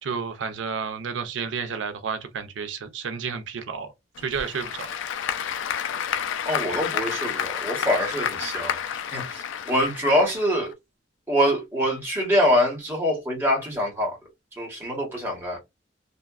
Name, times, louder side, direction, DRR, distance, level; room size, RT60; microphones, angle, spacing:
voice 1, 0.0-3.9 4.2-4.9, right 6 dB, 75° right, 0.4 m, -31 dB
Applause / Crowd, 4.1-10.7, left 8 dB, 80° left, 0.3 m, -30 dB
voice 2, 6.4-8.8 9.1-10.7 11.3-14.2 14.5-15.6, equal, 10° right, 1.0 m, -24 dB
2.7 x 2.2 x 2.3 m
head